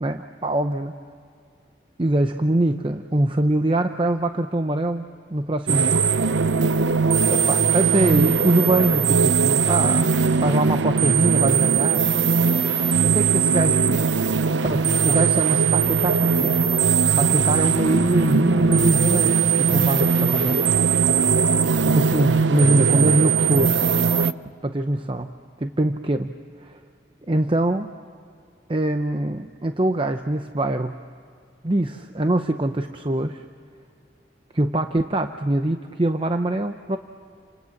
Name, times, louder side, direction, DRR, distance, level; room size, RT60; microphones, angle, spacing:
voice 1, 0.0-0.9 2.0-6.0 7.3-10.1 10.4-12.1 13.0-14.1 14.6-16.6 17.2-20.6 21.9-23.8 24.6-26.3 26.6-26.8 27.3-27.9 28.7-31.0 31.6-33.4 34.5-37.0, right 1 dB, 30° right, 7 dB, 0.7 m, -23 dB
sound 1, 5.7-24.3, right 5 dB, 85° right, 0.8 m, -20 dB
29.5 x 27.0 x 7.3 m, 2.3 s
head